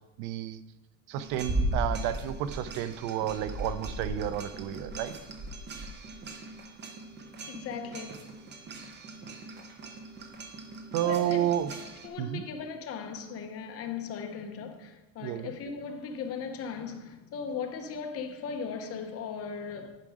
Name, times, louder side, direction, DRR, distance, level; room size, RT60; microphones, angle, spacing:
voice 1, 0.2-0.6 1.1-5.1 10.9-11.7 12.2-12.4 15.2-15.5, right 11 dB, 65° right, 0.7 m, -31 dB
sound 1, 1.1-12.1, right 1 dB, 25° right, 0.8 m, -38 dB
voice 2, 7.4-8.4 11.0-11.5 12.0-20.0, left 6 dB, 35° left, 0.9 m, -38 dB
11.0 x 5.2 x 4.9 m
cardioid pair, 160°, 41 cm